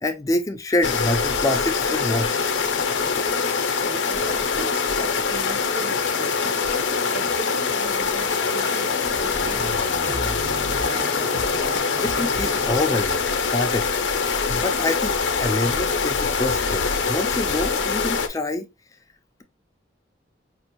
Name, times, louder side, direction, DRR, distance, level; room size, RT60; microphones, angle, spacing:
voice 1, 0.0-2.4 12.0-13.2 13.5-13.9 14.5-18.7, left 2 dB, 20° left, 0.4 m, -26 dB
sound 1, 0.8-18.3, left 5 dB, 85° left, 0.6 m, -24 dB
voice 2, 3.8-10.8, right 1 dB, 50° right, 1.1 m, -38 dB
Scratching (performance technique), 8.1-13.0, equal, 30° right, 1.5 m, -35 dB
5.0 x 2.4 x 2.9 m
head